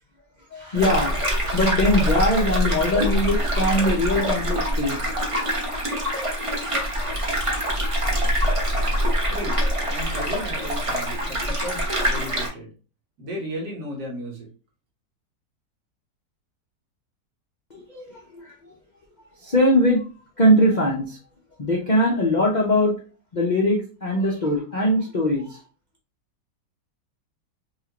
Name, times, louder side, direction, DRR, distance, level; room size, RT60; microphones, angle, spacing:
voice 1, 0.5-5.0 17.7-18.5 19.2-20.1 20.4-21.2 21.6-23.0 23.3-25.6, left 1 dB, 50° left, -2 dB, 0.5 m, -21 dB
sound 1, 0.7-12.5, equal, 25° right, 0.7 m, -24 dB
voice 2, 9.3-9.6 9.9-12.7 13.2-14.5, equal, 75° right, -2 dB, 2.1 m, -34 dB
5.4 x 2.5 x 2.9 m, 0.36 s
omnidirectional pair, 1.9 m